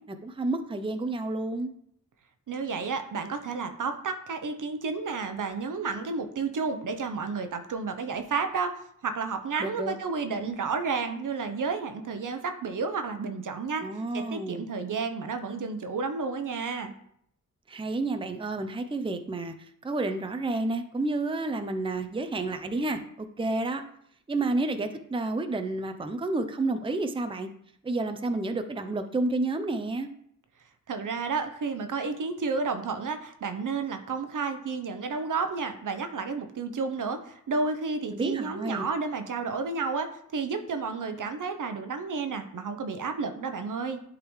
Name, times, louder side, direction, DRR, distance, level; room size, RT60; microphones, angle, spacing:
voice 1, 0.1-1.7 9.6-9.9 13.8-14.7 17.7-19.5 19.8-23.8 24.3-27.5 27.8-30.1 38.1-38.9, right 2 dB, 15° right, 7 dB, 0.6 m, -30 dB
voice 2, 2.5-8.7 9.0-13.9 14.1-16.9 30.9-40.1 40.3-44.0, right 4 dB, 70° right, 8 dB, 0.8 m, -31 dB
11.0 x 3.8 x 3.2 m, 0.68 s
wide cardioid pair, 85°, 33 cm